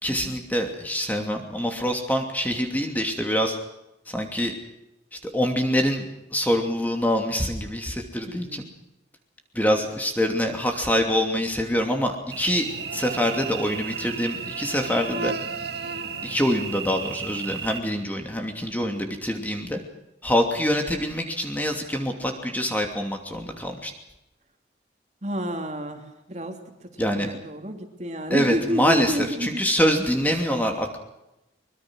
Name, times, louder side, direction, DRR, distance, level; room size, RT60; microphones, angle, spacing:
voice 1, 0.0-3.6 4.1-4.5 5.3-8.6 9.5-12.7 12.9-15.3 16.2-19.8 20.2-23.9 27.0-27.3 28.3-31.0, equal, 10° left, 3 dB, 2.8 m, -25 dB
voice 2, 8.3-8.7 25.2-29.7, equal, 40° right, 4 dB, 3.0 m, -30 dB
Cricket / Buzz, 12.3-17.8, right 5 dB, 65° right, 1.9 m, -33 dB
24.0 x 22.5 x 6.3 m, 0.89 s
head